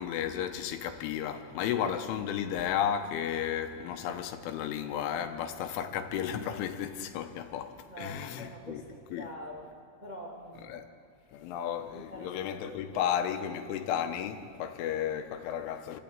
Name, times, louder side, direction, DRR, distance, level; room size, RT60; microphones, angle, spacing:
voice 1, 0.0-8.8 9.1-9.3 10.7-10.9 11.3-16.0, left 9 dB, 80° left, 3.6 m, -33 dB
voice 2, 7.9-10.7 11.9-12.4 12.7-13.1, equal, 65° right, 0.4 m, -45 dB
28.5 x 13.0 x 8.9 m
omnidirectional pair, 5.5 m